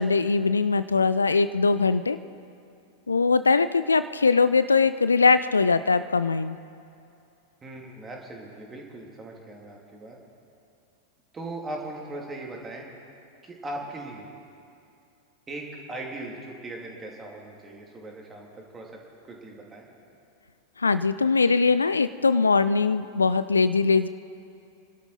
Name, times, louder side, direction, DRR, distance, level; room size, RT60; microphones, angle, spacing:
voice 1, 0.0-2.2 3.1-6.6 20.8-24.1, left 4 dB, 75° left, 13 dB, 0.4 m, -21 dB
voice 2, 7.6-10.2 11.3-12.9 13.4-14.3 15.5-19.0 19.3-19.9, right 2 dB, 20° right, -1 dB, 2.9 m, -39 dB
27.0 x 12.5 x 4.2 m, 2.5 s
figure-of-eight pair, 90°, 0 cm